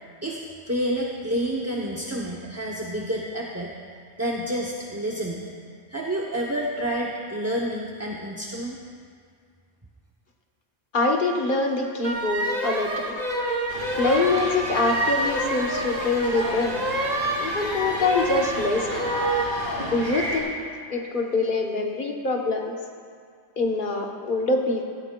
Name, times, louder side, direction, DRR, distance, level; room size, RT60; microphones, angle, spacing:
voice 1, 0.7-3.7 4.2-5.5 5.9-8.8, right 1 dB, 15° right, -3 dB, 0.6 m, -29 dB
voice 2, 10.9-13.1 14.0-16.8 17.4-19.1 19.9-20.5 20.9-22.7 23.6-24.8, left 3 dB, 50° left, 2 dB, 1.2 m, -24 dB
sound 1, 12.0-19.6, right 1 dB, 40° right, 1.1 m, -28 dB
sound 2, 13.7-20.4, right 1 dB, 85° right, 2.5 m, -33 dB
16.5 x 13.5 x 2.3 m, 2.1 s
omnidirectional pair, 1.1 m